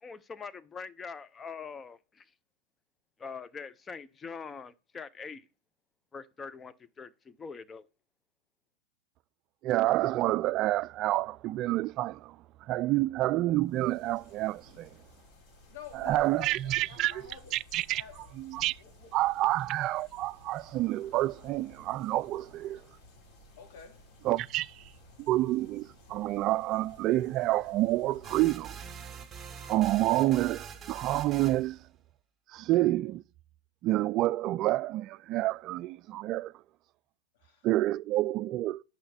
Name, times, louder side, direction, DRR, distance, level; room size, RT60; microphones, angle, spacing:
voice 1, 0.0-2.3 3.2-5.5 6.1-7.9, left 5 dB, 20° left, 0.6 m, -43 dB
voice 2, 9.6-12.4 12.7-14.9 15.9-17.2 17.5-18.0 18.4-18.8 19.1-22.8 24.2-24.8 25.2-28.8 29.7-31.8 32.5-33.2 33.8-36.5 37.6-38.8, right 16 dB, 40° right, 0.3 m, -28 dB
sound 1, 13.6-28.7, left 1 dB, 45° left, 4.0 m, -56 dB
voice 3, 15.7-17.5 17.9-18.3 18.8-19.6 23.6-24.1 37.3-37.7, left 8 dB, 65° left, 2.8 m, -49 dB
sound 2, 28.2-31.7, right 7 dB, 20° right, 2.1 m, -44 dB
7.4 x 5.7 x 4.2 m
hypercardioid pair, 120°, 0 cm